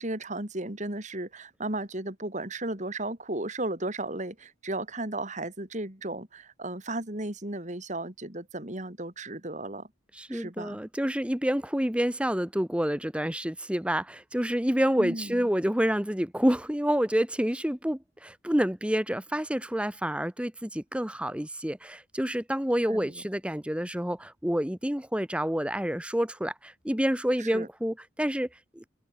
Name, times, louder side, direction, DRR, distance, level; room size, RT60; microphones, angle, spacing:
voice 1, 0.0-9.9 10.3-10.8 15.0-15.5 22.9-23.2 27.4-27.7, right 2 dB, 35° right, 3.0 m, -35 dB
voice 2, 10.2-28.5 28.7-28.8, equal, 5° right, 1.1 m, -28 dB
head